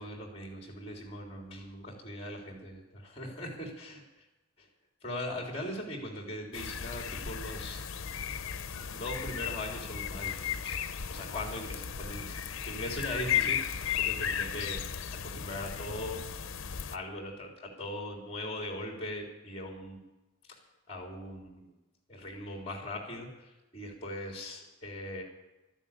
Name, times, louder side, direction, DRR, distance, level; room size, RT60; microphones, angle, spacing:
voice 1, 0.0-4.0 4.6-4.7 5.0-7.8 8.9-10.8 11.1-12.4 12.6-14.8 15.1-16.5 16.9-20.0 20.5-20.6 20.9-21.7 22.1-25.2, left 1 dB, 30° left, 1 dB, 3.4 m, -40 dB
sound 1, 6.5-17.0, left 8 dB, 85° left, 0.7 m, -35 dB
13.0 x 10.5 x 9.0 m, 0.99 s
head